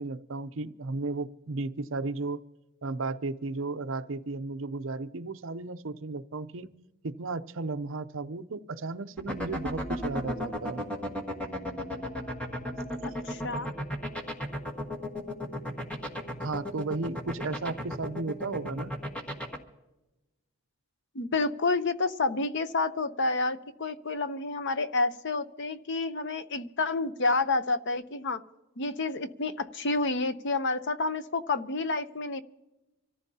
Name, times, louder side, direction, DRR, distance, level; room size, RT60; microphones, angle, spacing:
voice 1, 0.0-2.4 2.8-6.7 7.0-10.8 13.5-13.7 16.4-18.9, right 3 dB, 60° right, 11 dB, 0.6 m, -34 dB
sound 1, 9.2-19.6, left 1 dB, 5° left, 1.5 m, -33 dB
voice 2, 13.0-13.7 21.1-28.4 28.8-32.4, left 3 dB, 55° left, 11 dB, 0.7 m, -29 dB
26.0 x 14.5 x 2.8 m, 1.0 s
head